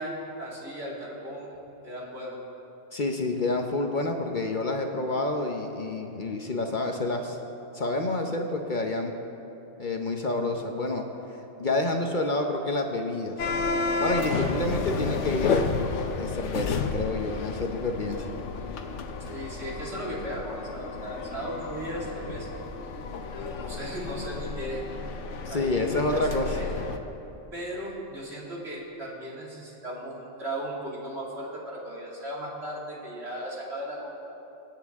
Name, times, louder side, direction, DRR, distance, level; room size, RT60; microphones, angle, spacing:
voice 1, 0.0-1.6 1.8-2.4 19.2-22.6 23.4-24.8 25.5-26.8 27.5-34.1, right 1 dB, 65° right, -4 dB, 2.7 m, -36 dB
voice 2, 2.9-7.4 7.7-9.1 9.8-11.0 11.6-13.3 14.0-15.6 16.2-18.3 25.5-26.6, left 2 dB, 45° left, 3 dB, 0.9 m, -28 dB
sound 1, 13.4-27.0, left 4 dB, 90° left, 1.1 m, -31 dB
25.0 x 8.8 x 3.6 m, 3.0 s
omnidirectional pair, 1.2 m